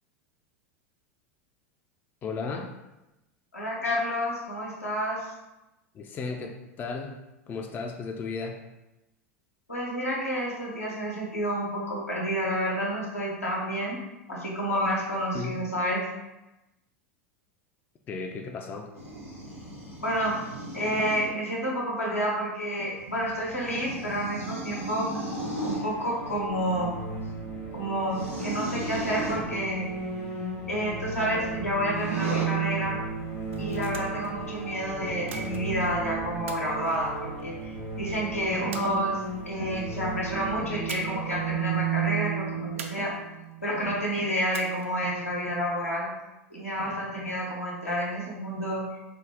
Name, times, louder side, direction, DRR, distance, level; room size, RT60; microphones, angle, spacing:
voice 1, 2.2-2.7 5.9-7.1 7.5-8.6 15.3-15.6 18.1-18.9, left 4 dB, 25° left, 3 dB, 0.3 m, -34 dB
voice 2, 3.5-5.3 9.7-14.0 14.3-16.1 20.0-20.4 20.7-25.1 25.6-27.0 27.7-29.9 30.7-33.0 33.6-39.2 39.4-43.1 43.6-46.1 46.5-48.9, equal, 85° left, -4 dB, 0.9 m, -29 dB
sound 1, 18.9-21.3 22.9-25.9 28.1-29.5 31.8-32.4, right 1 dB, 90° right, 1.4 m, -36 dB
sound 2, 25.4-44.0, right 5 dB, 50° left, 1.0 m, -34 dB
sound 3, 33.4-34.3 35.3-35.9 36.5-37.7 38.7-39.5 40.9-41.3 41.6-41.7 42.8-43.5 44.5-45.1, right 5 dB, 65° right, 0.4 m, -43 dB
3.7 x 2.0 x 3.4 m, 0.99 s
figure-of-eight pair, 85°, 8 cm